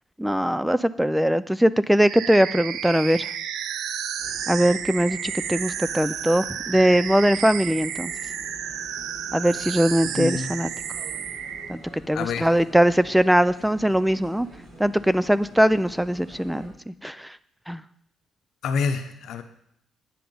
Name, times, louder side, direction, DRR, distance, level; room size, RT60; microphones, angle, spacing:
voice 1, 0.2-3.3 4.5-8.1 9.3-10.7 11.7-11.8 12.1-14.5 14.8-17.3 17.7-17.8, equal, 5° right, 15 dB, 0.3 m, -21 dB
sound 1, 2.1-11.7, right 9 dB, 85° right, 0.5 m, -32 dB
sound 2, 4.2-16.7, equal, 65° right, 3.5 m, -46 dB
voice 2, 10.1-10.5 12.1-12.5 18.6-19.4, left 5 dB, 75° left, 8 dB, 0.9 m, -27 dB
9.7 x 5.9 x 5.3 m, 0.72 s
cardioid pair, 90°, 0 cm